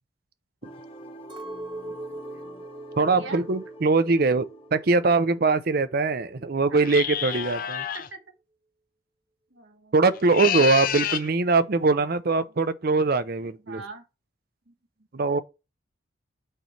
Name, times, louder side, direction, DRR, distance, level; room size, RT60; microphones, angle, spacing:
sound 1, 0.6-6.5, equal, 30° left, 1.0 m, -48 dB
Chink clink, 1.3-5.7 5.9-6.7, right 2 dB, 25° right, 1.0 m, -41 dB
voice 1, 1.4-2.6 3.1-3.4 6.7-7.0 7.9-8.2 9.5-10.7 13.6-14.0 14.7-14.8 15.1-15.3, right 3 dB, 65° right, 1.6 m, -44 dB
voice 2, 3.0-7.9 9.9-13.8 15.1-15.4, right 3 dB, 50° right, 0.5 m, -22 dB
sound 2, 6.8-8.1 10.1-11.3, left 10 dB, 45° left, 0.4 m, -28 dB
6.4 x 3.1 x 5.8 m
head